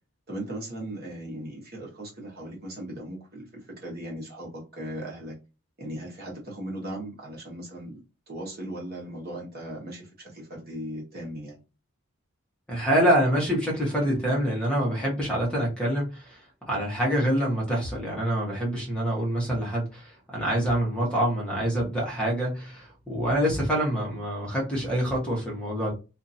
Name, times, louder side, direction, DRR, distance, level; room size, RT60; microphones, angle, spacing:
voice 1, 0.3-5.3 5.8-11.6, right 1 dB, 45° right, -2 dB, 1.2 m, -38 dB
voice 2, 12.7-16.4 16.7-25.9, equal, 5° left, -4 dB, 1.1 m, -26 dB
2.8 x 2.6 x 2.6 m, 0.30 s
head